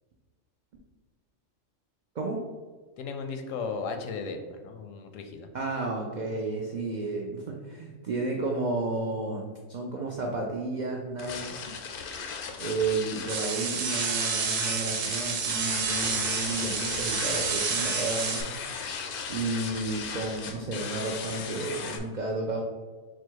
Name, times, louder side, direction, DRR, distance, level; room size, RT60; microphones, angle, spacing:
voice 1, 3.0-5.5, left 4 dB, 85° left, 6 dB, 1.0 m, -35 dB
voice 2, 5.5-11.6 12.6-18.5 19.3-22.6, right 2 dB, 70° right, 0 dB, 0.4 m, -32 dB
sound 1, 11.2-22.0, left 5 dB, 65° left, 0.5 m, -37 dB
sound 2, 13.3-18.4, right 5 dB, 85° right, 1.0 m, -29 dB
4.1 x 2.3 x 4.6 m, 1.4 s
omnidirectional pair, 1.3 m